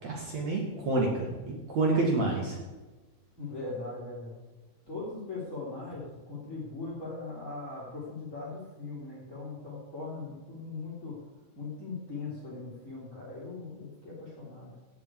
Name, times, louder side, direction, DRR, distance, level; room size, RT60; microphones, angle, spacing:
voice 1, 0.0-2.6, right 2 dB, 55° right, -2 dB, 1.9 m, -28 dB
voice 2, 3.4-4.3 4.9-11.2 11.5-14.7, left 3 dB, 25° left, -8 dB, 2.0 m, -40 dB
16.5 x 8.4 x 4.7 m, 1.2 s
omnidirectional pair, 5.9 m